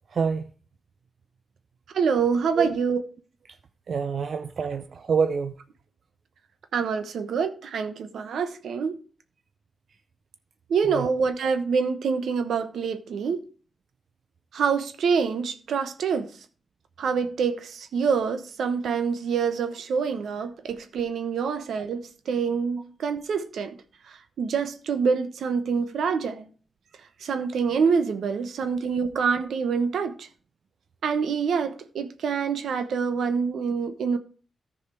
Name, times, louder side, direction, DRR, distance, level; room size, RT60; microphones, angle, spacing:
voice 1, 0.1-0.5 2.6-2.7 3.9-5.5 10.9-11.1, right 5 dB, 65° right, 0.6 m, -26 dB
voice 2, 1.9-3.0 6.7-8.9 10.7-13.4 14.5-16.3 17.0-23.7 24.4-26.5 27.2-30.3 31.0-34.2, right 6 dB, 80° right, 1.0 m, -26 dB
13.5 x 4.9 x 4.8 m
cardioid pair, 65°, 0 cm